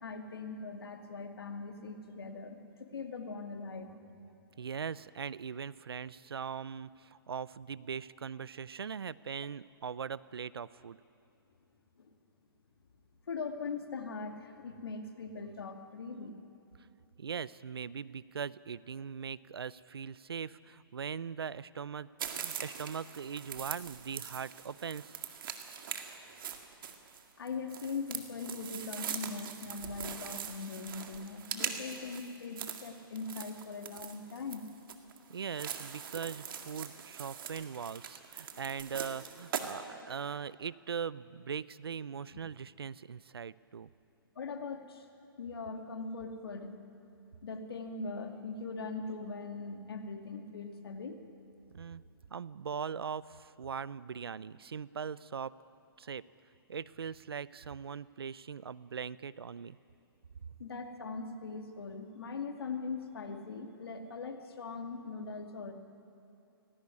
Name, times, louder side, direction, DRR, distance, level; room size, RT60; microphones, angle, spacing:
voice 1, 0.0-3.9 12.0-12.1 13.3-16.4 27.4-34.7 38.5-38.6 44.4-45.1 45.4-46.7 47.4-51.2 60.6-65.7, left 4 dB, 80° left, 5 dB, 2.3 m, -41 dB
voice 2, 4.6-11.0 17.2-25.1 35.3-43.9 51.7-52.0 52.3-55.5 56.0-56.2 56.7-59.8, right 7 dB, 85° right, 19 dB, 0.6 m, -40 dB
sound 1, 22.2-39.7, right 8 dB, 65° right, 2.0 m, -42 dB
17.5 x 17.5 x 9.7 m, 2.6 s
hypercardioid pair, 130°, 12 cm